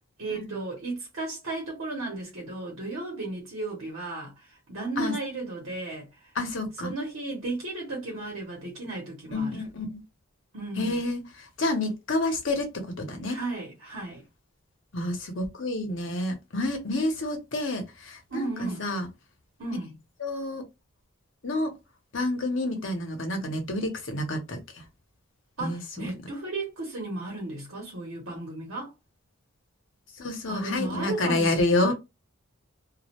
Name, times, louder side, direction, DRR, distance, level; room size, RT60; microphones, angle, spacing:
voice 1, 0.2-6.3 6.8-9.6 10.5-11.0 13.3-14.2 18.3-18.8 19.6-19.9 25.6-28.9 30.5-31.9, right 2 dB, 75° right, 0.9 m, -34 dB
voice 2, 6.4-6.9 9.3-10.0 10.8-11.2 11.6-13.4 14.9-19.1 20.2-20.6 21.4-21.7 22.1-24.6 25.6-26.1 30.2-31.9, left 2 dB, 65° left, 0.8 m, -29 dB
2.3 x 2.1 x 2.9 m
head